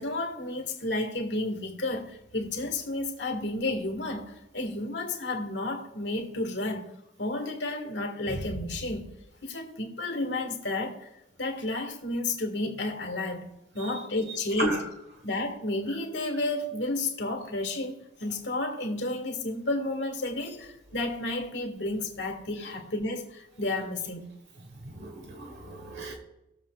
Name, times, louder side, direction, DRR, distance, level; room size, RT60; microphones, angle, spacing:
voice 1, 0.0-6.9 7.2-9.1 9.4-11.1 11.4-14.8 15.2-24.3, left 2 dB, 85° left, 1.8 m, -31 dB
voice 2, 24.8-26.1, right 1 dB, 70° right, 1.3 m, -33 dB
20.5 x 7.2 x 2.4 m
head